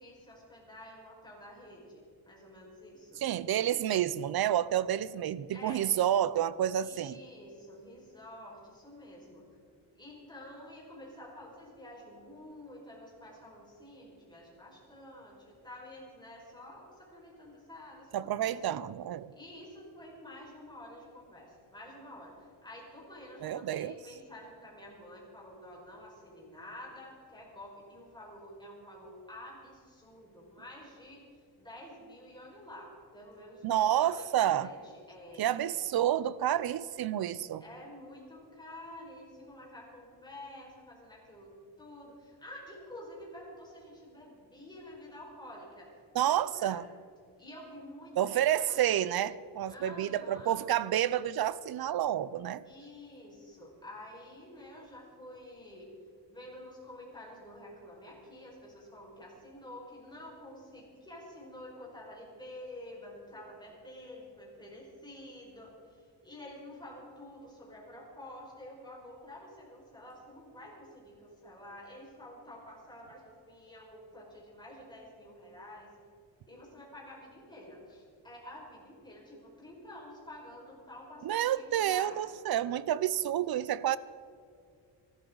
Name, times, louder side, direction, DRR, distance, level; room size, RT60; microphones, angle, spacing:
voice 1, 0.0-3.2 5.5-6.1 6.7-9.4 10.0-18.5 19.3-31.2 31.6-35.8 37.6-45.9 46.1-46.8 47.4-48.8 49.7-50.6 52.6-55.9 56.3-75.9 76.5-82.2 82.8-82.9, left 1 dB, 10° left, 5.3 m, -49 dB
voice 2, 3.2-7.2 18.1-19.3 23.4-24.0 33.6-34.7 35.4-37.6 46.1-46.8 48.2-52.6 81.2-84.0, right 11 dB, 55° right, 0.6 m, -29 dB
24.5 x 13.5 x 4.0 m
wide cardioid pair, 175°, 46 cm